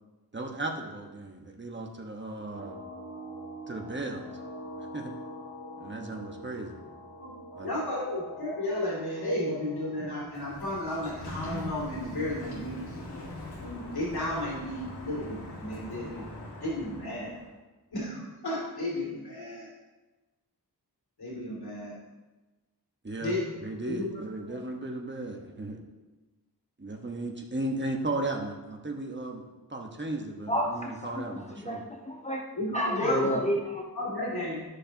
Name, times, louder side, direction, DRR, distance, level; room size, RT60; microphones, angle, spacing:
voice 1, 0.3-2.8 3.7-4.2 4.8-5.1 5.8-6.9 7.6-7.7 23.0-23.3 23.6-25.8 26.8-29.4 29.7-31.8, right 2 dB, 30° right, 2 dB, 1.3 m, -35 dB
sound 1, 2.5-10.7, equal, 70° right, 2.9 m, -44 dB
voice 2, 7.6-13.0 13.6-17.3 17.9-19.7 21.2-22.0 23.2-23.5 23.9-24.2 24.5-24.6 32.6-33.5 33.9-34.6, left 1 dB, 65° left, -6 dB, 2.6 m, -33 dB
Sliding door, 10.1-17.5, left 2 dB, 85° left, 1.6 m, -42 dB
voice 3, 30.5-31.2 31.6-32.5 32.7-33.9, equal, 15° left, 1 dB, 0.7 m, -30 dB
12.5 x 6.6 x 2.9 m, 1.2 s
wide cardioid pair, 60°, 40 cm